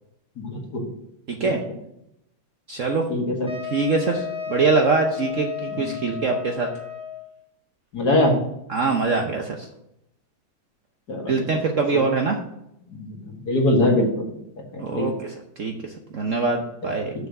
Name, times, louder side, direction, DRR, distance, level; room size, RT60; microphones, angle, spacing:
voice 1, 0.4-0.9 3.1-3.3 5.7-6.3 7.9-8.4 11.1-11.5 12.9-14.4 14.7-15.1, left 1 dB, 55° left, 1 dB, 2.3 m, -23 dB
voice 2, 1.3-1.6 2.7-3.1 3.7-6.7 8.7-9.7 11.2-12.4 14.8-17.1, right 4 dB, 50° right, 2 dB, 1.0 m, -23 dB
Wind instrument woodwind instrument, 3.5-7.3, left 8 dB, 25° right, 1.1 m, -33 dB
6.9 x 6.8 x 6.6 m, 0.80 s
omnidirectional pair, 2.1 m